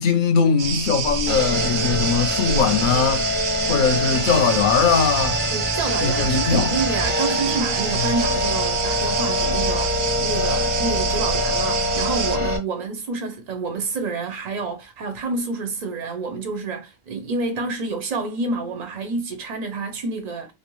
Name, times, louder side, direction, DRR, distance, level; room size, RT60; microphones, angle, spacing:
voice 1, 0.0-3.3 3.7-5.4 6.0-6.8, left 6 dB, 60° left, 0.6 m, -20 dB
sound 1, 0.6-12.4, right 7 dB, 85° right, 0.8 m, -27 dB
sound 2, 1.3-12.6, left 1 dB, 10° right, 0.6 m, -25 dB
voice 2, 5.5-20.5, right 4 dB, 55° right, 0.5 m, -28 dB
2.6 x 2.1 x 3.0 m
omnidirectional pair, 1.0 m